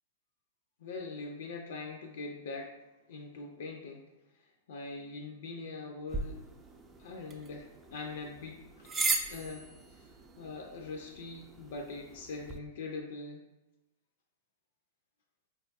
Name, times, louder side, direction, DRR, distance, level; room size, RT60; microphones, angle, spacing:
voice 1, 0.8-2.7 3.1-4.0 4.4-6.4 7.0-8.9 9.3-9.6 9.9-10.0 10.4-13.4, left 3 dB, 70° left, 2 dB, 0.4 m, -42 dB
sound 1, 6.1-12.6, right 3 dB, 15° right, 0.3 m, -38 dB
3.8 x 2.3 x 2.5 m, 0.99 s
hypercardioid pair, 125°, 0 cm